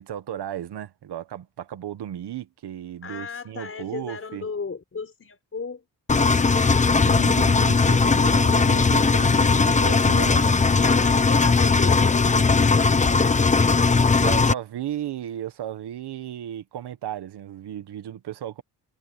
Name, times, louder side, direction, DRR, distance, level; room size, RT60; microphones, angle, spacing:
voice 1, 0.0-4.5 7.0-10.6 14.2-18.6, right 11 dB, 85° right, 1.4 m, -34 dB
voice 2, 3.0-5.8 10.8-13.6, left 5 dB, 35° left, 6.2 m, -36 dB
Engine, 6.1-14.5, left 4 dB, 20° left, 0.6 m, -19 dB
wide cardioid pair, 150°, 39 cm